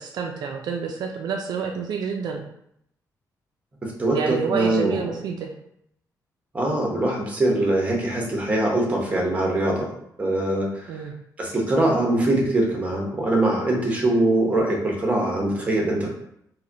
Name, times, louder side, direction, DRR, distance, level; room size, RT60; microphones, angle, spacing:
voice 1, 0.0-2.4 4.1-5.5 10.9-11.1, right 5 dB, 70° right, 3 dB, 0.4 m, -28 dB
voice 2, 3.8-5.1 6.5-9.9 10.2-11.0 11.4-16.1, right 1 dB, 20° right, -1 dB, 0.9 m, -23 dB
4.8 x 2.2 x 2.7 m, 0.74 s
cardioid pair, 140°, 7 cm